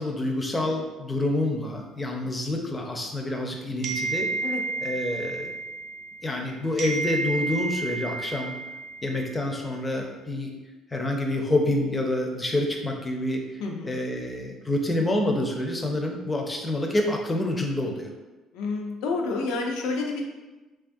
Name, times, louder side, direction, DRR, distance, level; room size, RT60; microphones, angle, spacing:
voice 1, 0.0-4.3 4.8-5.5 6.2-8.5 9.0-10.5 10.9-13.4 13.8-18.1, left 1 dB, 15° left, 2 dB, 0.4 m, -27 dB
sound 1, 3.8-6.4 6.8-9.3, right 3 dB, 55° right, 0.5 m, -31 dB
voice 2, 13.6-13.9 18.5-20.2, left 3 dB, 90° left, 1 dB, 0.4 m, -29 dB
3.2 x 2.3 x 2.5 m, 1.1 s
cardioid pair, 130°, 0 cm